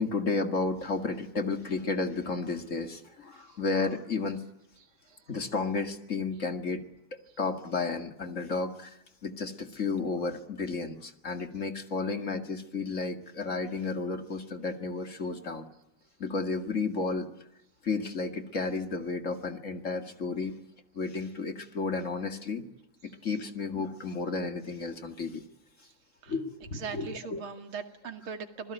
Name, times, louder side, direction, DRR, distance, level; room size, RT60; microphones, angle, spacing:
voice 1, 0.0-4.4 5.3-6.8 7.4-9.0 9.2-15.7 16.2-17.3 17.8-20.5 20.9-22.7 23.0-25.4 26.3-27.4, left 4 dB, 35° left, 7 dB, 2.3 m, -32 dB
voice 2, 26.7-28.7, right 6 dB, 70° right, 7 dB, 3.0 m, -39 dB
27.0 x 20.5 x 9.1 m, 0.79 s
omnidirectional pair, 2.4 m